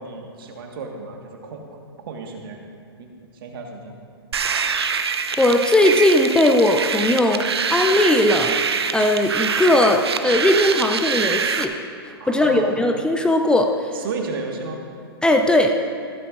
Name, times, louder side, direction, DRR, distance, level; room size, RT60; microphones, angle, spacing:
voice 1, 0.0-1.6 2.0-2.6 3.4-4.0 12.2-12.8 13.9-14.8, right 4 dB, 60° right, 2 dB, 1.7 m, -33 dB
sound 1, 4.3-11.6, right 6 dB, 80° right, 0.7 m, -24 dB
voice 2, 5.4-7.4 7.7-8.6 8.9-11.8 12.3-13.9 15.2-15.7, left 1 dB, 5° left, 4 dB, 0.5 m, -18 dB
15.0 x 13.0 x 2.6 m, 2.2 s
hypercardioid pair, 115°, 13 cm